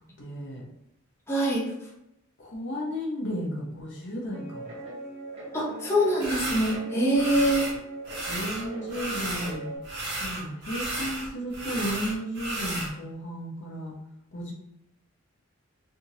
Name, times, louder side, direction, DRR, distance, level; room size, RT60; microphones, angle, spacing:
voice 1, 0.2-0.6 2.4-4.7 8.3-9.7 9.9-13.9 14.3-14.5, equal, 60° left, -2 dB, 0.9 m, -34 dB
voice 2, 1.3-1.6 5.5-7.7, equal, 10° left, -5 dB, 0.7 m, -24 dB
Guitar, 4.3-9.8, right 2 dB, 30° right, 0.9 m, -40 dB
sound 1, 6.2-6.8 7.1-7.8 8.0-9.5 9.8-12.9, right 1 dB, 55° right, 1.2 m, -33 dB
3.4 x 2.8 x 2.8 m, 0.85 s
head